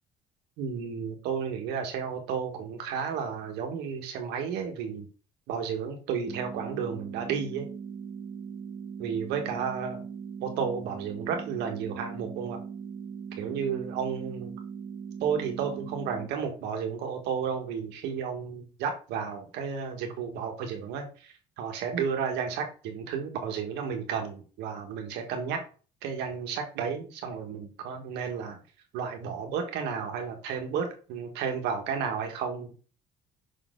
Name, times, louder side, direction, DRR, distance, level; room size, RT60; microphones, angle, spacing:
voice 1, 0.6-5.1 5.5-7.7 9.0-10.0 10.4-12.6 13.4-14.5 15.2-25.6 26.0-28.6 28.9-32.7, right 6 dB, 90° right, 4 dB, 1.7 m, -32 dB
sound 1, 6.3-16.3, right 6 dB, 35° right, 1.0 m, -40 dB
6.2 x 4.1 x 3.9 m, 0.37 s
cardioid pair, 110°, 17 cm